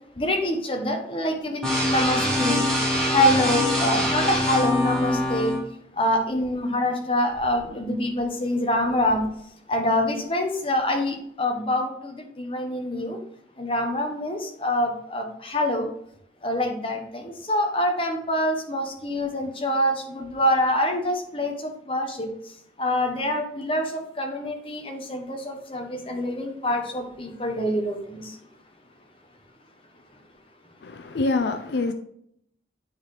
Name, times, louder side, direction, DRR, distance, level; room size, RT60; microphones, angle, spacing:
voice 1, 0.2-2.7 3.1-5.6 5.9-9.3 9.7-13.2 13.6-15.9 16.4-22.3 22.8-28.4, left 1 dB, 30° left, 3 dB, 1.1 m, -25 dB
sound 1, 1.6-5.6, left 1 dB, 5° left, 1.5 m, -24 dB
voice 2, 30.8-31.9, left 3 dB, 75° left, 8 dB, 0.5 m, -25 dB
9.3 x 4.1 x 3.3 m, 0.70 s
head